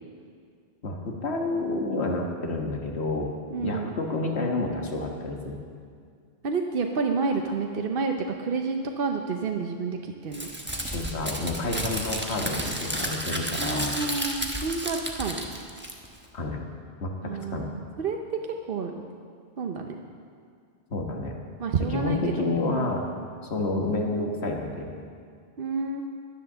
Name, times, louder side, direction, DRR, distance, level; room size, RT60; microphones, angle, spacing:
voice 1, 0.8-3.3 3.6-5.6 10.8-13.9 16.3-16.6 17.0-17.7 20.9-21.3 21.9-23.1 23.5-24.9, left 2 dB, 70° left, 1 dB, 1.8 m, -29 dB
voice 2, 3.5-3.9 6.4-10.5 13.6-15.4 17.2-18.9 19.6-20.0 21.6-22.2 22.7-22.9 25.6-26.0, right 4 dB, 55° right, 3 dB, 0.9 m, -29 dB
Crumpling crinkling, 10.3-16.2, right 1 dB, 10° right, 1.1 m, -32 dB
11.0 x 10.5 x 6.8 m, 2.2 s
omnidirectional pair, 1.2 m